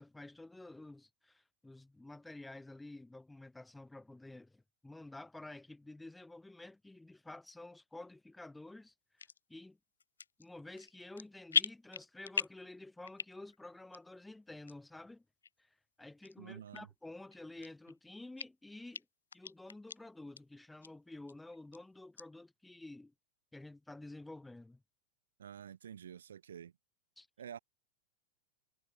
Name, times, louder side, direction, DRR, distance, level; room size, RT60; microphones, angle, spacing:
voice 1, 0.0-9.8 10.4-15.2 15.6-19.0 19.3-23.1 23.5-24.8 27.2-27.3, left 2 dB, 5° left, 3.4 m, -51 dB
sound 1, 9.2-9.4 10.0-10.5 10.8-11.2 11.5-12.7 13.0-13.6 13.9-14.0 14.7-14.8 15.4-15.5 16.2-16.3 16.7-16.8 17.3-18.0 18.4-18.5 18.9-19.0 19.3-20.0 20.4-20.5 20.8-20.9 21.3-21.8 22.2-22.3, left 6 dB, 75° left, 0.5 m, -37 dB
voice 2, 16.4-16.9 25.4-26.7 27.4-27.6, right 9 dB, 65° right, 4.6 m, -49 dB
figure-of-eight pair, 90°, 0 cm